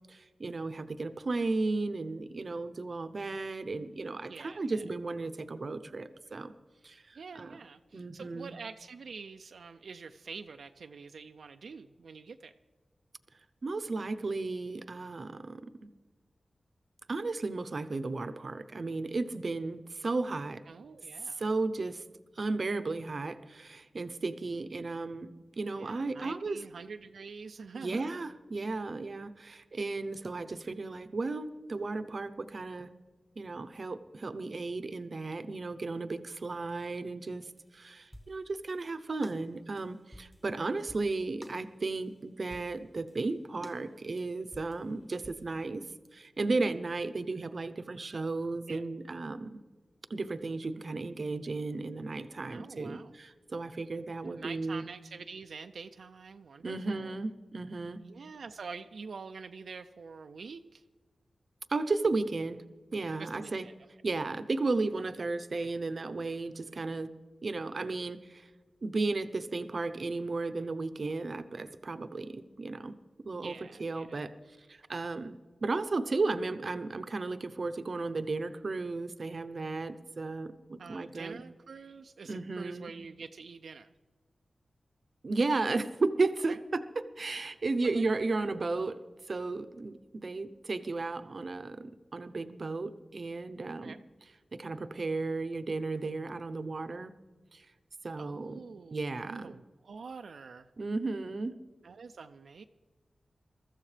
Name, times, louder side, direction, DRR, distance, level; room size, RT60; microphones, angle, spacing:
voice 1, 0.1-6.5 6.8-7.6 7.9-8.5 13.6-15.9 17.1-20.6 21.2-22.0 22.4-25.3 25.6-26.6 27.7-32.9 33.4-45.8 46.1-49.6 50.1-54.8 56.6-58.0 61.7-62.6 62.9-63.6 64.0-67.1 67.4-68.5 68.8-73.0 73.3-74.3 74.7-81.4 82.3-82.9 85.2-89.0 89.3-94.0 94.5-97.1 97.5-97.7 98.0-98.6 98.9-99.6 100.8-101.5, right 3 dB, 50° right, 12 dB, 0.7 m, -34 dB
voice 2, 4.3-4.8 7.1-12.5 20.7-21.4 25.8-28.1 48.7-48.8 52.5-53.1 54.2-57.2 58.0-60.8 63.2-63.7 73.4-74.2 80.8-83.9 86.5-86.6 87.8-88.0 93.8-94.0 98.2-100.7 101.8-102.6, right 5 dB, 85° right, 7 dB, 0.4 m, -46 dB
sound 1, 37.3-39.0 39.2-42.2 42.5-45.5, equal, 10° left, 1.2 m, -52 dB
22.5 x 14.0 x 3.3 m, 1.4 s
wide cardioid pair, 90°, 0 cm